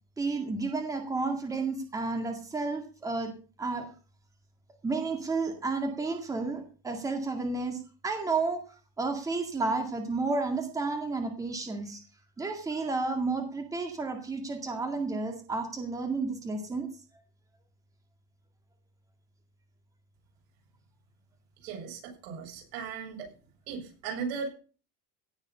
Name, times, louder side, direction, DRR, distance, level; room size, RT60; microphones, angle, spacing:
voice 1, 0.2-3.3 3.6-3.9 4.8-8.6 9.0-12.0 12.4-16.9, right 3 dB, 10° right, 5 dB, 2.0 m, -31 dB
voice 2, 21.6-23.3 23.7-24.5, right 5 dB, 90° right, 1 dB, 7.3 m, -37 dB
17.0 x 7.4 x 5.6 m, 0.37 s
cardioid pair, 170°, 29 cm